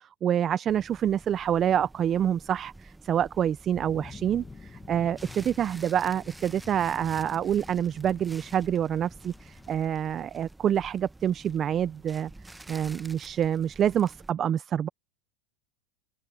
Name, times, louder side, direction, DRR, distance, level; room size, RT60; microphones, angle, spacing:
voice 1, 0.0-12.3 12.7-14.9, right 9 dB, 30° right, 0.5 m, -27 dB
sound 1, 0.7-14.3, right 2 dB, 5° right, 1.0 m, -50 dB
sound 2, 3.7-9.8, left 4 dB, 15° left, 1.2 m, -47 dB
supercardioid pair, 130°, 0 cm